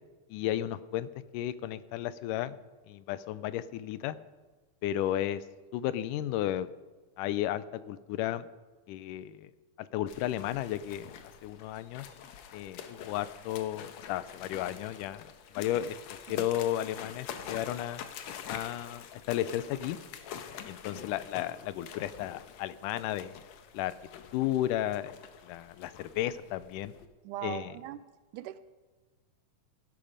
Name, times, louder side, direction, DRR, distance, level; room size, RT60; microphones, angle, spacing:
voice 1, 0.3-2.6 2.9-4.2 4.8-5.4 5.7-6.7 7.2-8.5 8.9-9.5 9.8-11.1 11.4-12.1 12.5-15.3 15.6-16.0 16.3-18.0 18.5-20.0 20.7-23.3 23.7-23.9 24.3-25.1 25.4-26.9 27.4-27.7, left 12 dB, 85° left, 2.1 m, -33 dB
sound 1, 10.1-27.1, left 8 dB, 70° left, 1.9 m, -46 dB
voice 2, 27.2-28.1 28.3-28.6, right 13 dB, 80° right, 2.1 m, -40 dB
18.0 x 11.5 x 5.1 m
omnidirectional pair, 3.7 m